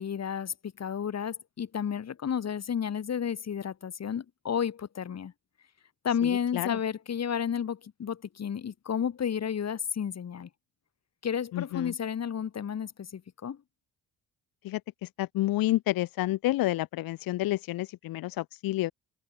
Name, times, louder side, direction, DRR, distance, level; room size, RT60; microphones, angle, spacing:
voice 1, 0.0-5.3 6.0-10.5 11.2-13.6, left 8 dB, 45° left, 4.9 m, -32 dB
voice 2, 6.2-6.8 11.5-11.9 14.6-14.8 15.2-18.9, left 16 dB, 75° left, 1.5 m, -29 dB
cardioid pair, 85°, 35 cm